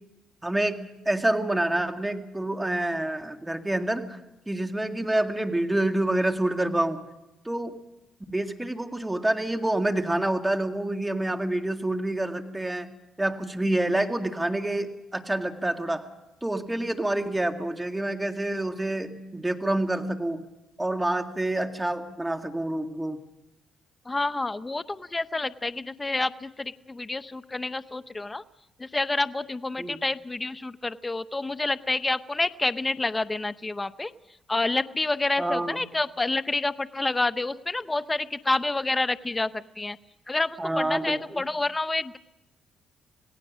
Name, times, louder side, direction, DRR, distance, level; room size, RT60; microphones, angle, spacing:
voice 1, 0.4-4.2 4.5-7.0 7.5-7.7 8.3-12.9 13.2-16.0 16.4-20.4 20.8-23.2 29.8-30.0 35.4-35.8 40.6-41.4, right 1 dB, 10° right, 6 dB, 2.0 m, -27 dB
voice 2, 24.1-28.4 28.8-34.1 34.5-40.0 40.3-42.2, left 2 dB, 20° left, 12 dB, 0.8 m, -28 dB
27.0 x 18.0 x 6.3 m, 0.96 s
cardioid pair, 90°, 0 cm